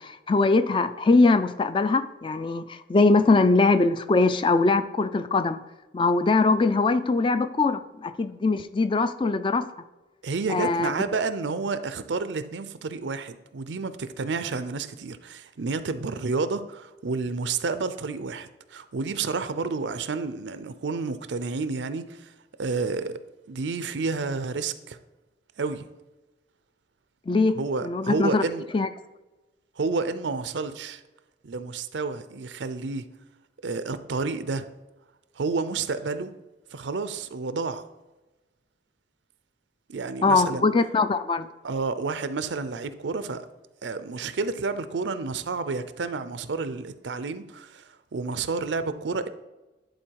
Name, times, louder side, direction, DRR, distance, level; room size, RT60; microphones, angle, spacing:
voice 1, 0.0-5.6 5.9-9.7 10.5-10.9 27.3-27.6 27.8-28.4 28.7-28.9 40.2-41.5, left 3 dB, 30° left, 0.3 m, -22 dB
voice 2, 10.2-22.3 22.6-23.2 23.5-25.0 25.6-25.8 27.5-28.7 29.8-31.0 31.4-33.1 33.6-34.7 35.4-36.3 36.7-37.8 39.9-40.7 41.6-43.5 43.8-49.3, right 4 dB, 85° right, 0.5 m, -30 dB
10.5 x 4.3 x 4.6 m
head